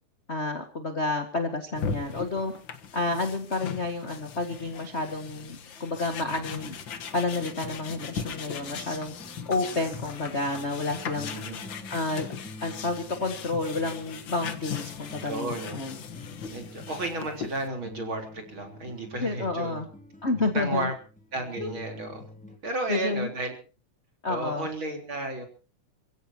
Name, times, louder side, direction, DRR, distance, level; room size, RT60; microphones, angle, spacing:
voice 1, 0.3-2.5 2.9-6.8 7.1-9.1 9.4-11.3 11.9-12.3 12.6-16.0 19.2-19.9 20.2-20.9 21.6-21.7 22.9-23.3 24.2-24.7, left 3 dB, 30° left, 5 dB, 1.5 m, -30 dB
sound 1, 1.8-17.7, left 6 dB, 50° left, 1.5 m, -39 dB
sound 2, 6.1-22.6, left 1 dB, 5° left, 2.1 m, -47 dB
voice 2, 11.3-11.6 15.2-15.8 16.5-19.8 20.5-20.9 21.3-22.2 22.6-23.5 24.3-25.5, right 2 dB, 40° right, 3 dB, 4.4 m, -33 dB
28.5 x 16.0 x 2.9 m, 0.37 s
omnidirectional pair, 3.7 m